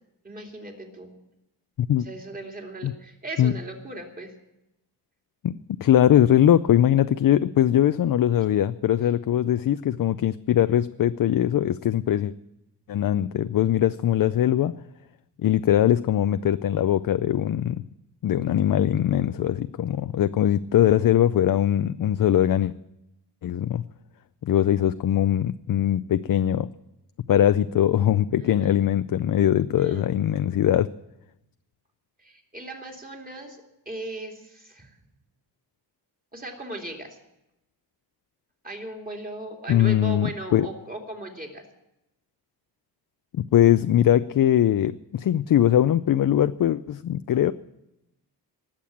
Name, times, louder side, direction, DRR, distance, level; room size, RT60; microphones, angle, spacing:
voice 1, 0.2-1.1 2.0-4.3 28.3-28.8 29.8-30.1 32.2-35.0 36.3-37.2 38.6-41.6, right 1 dB, 20° right, 1 dB, 2.7 m, -38 dB
voice 2, 5.8-12.3 12.9-14.8 15.4-17.8 18.2-22.7 23.4-23.9 24.4-26.7 27.3-30.9 39.7-40.7 43.4-47.5, left 11 dB, 55° left, 12 dB, 0.5 m, -21 dB
19.5 x 7.6 x 8.6 m, 0.90 s
wide cardioid pair, 140°, 41 cm